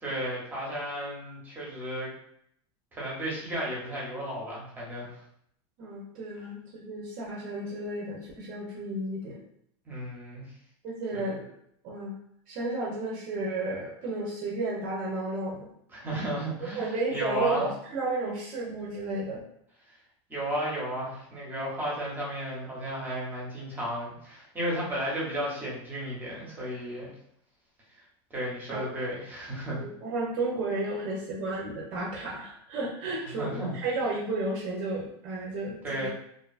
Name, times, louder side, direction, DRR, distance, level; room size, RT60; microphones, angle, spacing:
voice 1, 0.0-2.1 2.9-5.2 9.9-10.4 11.1-11.4 15.9-17.7 20.3-27.1 28.3-29.8 33.2-33.7 35.8-36.1, equal, 15° right, -5 dB, 0.8 m, -33 dB
voice 2, 5.8-9.4 10.8-11.5 11.8-12.2 12.5-15.7 16.7-19.4 28.7-28.9 29.7-36.1, right 2 dB, 45° right, -4 dB, 0.6 m, -32 dB
2.5 x 2.2 x 2.4 m, 0.71 s
supercardioid pair, 135°, 15 cm